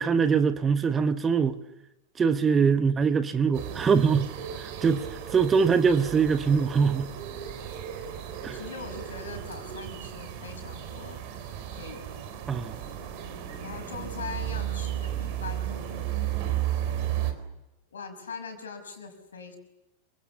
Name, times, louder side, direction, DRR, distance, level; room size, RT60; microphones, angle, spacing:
voice 1, 0.0-1.6 2.2-4.3 4.6-7.1 8.4-8.6 12.5-12.8, right 6 dB, 20° right, 1.2 m, -23 dB
sound 1, 3.5-17.3, right 11 dB, 45° right, 4.0 m, -34 dB
voice 2, 8.5-11.2 11.7-12.0 13.6-16.0 17.9-19.6, left 5 dB, 70° left, 5.8 m, -41 dB
27.5 x 26.0 x 7.2 m
figure-of-eight pair, 90°, 0 cm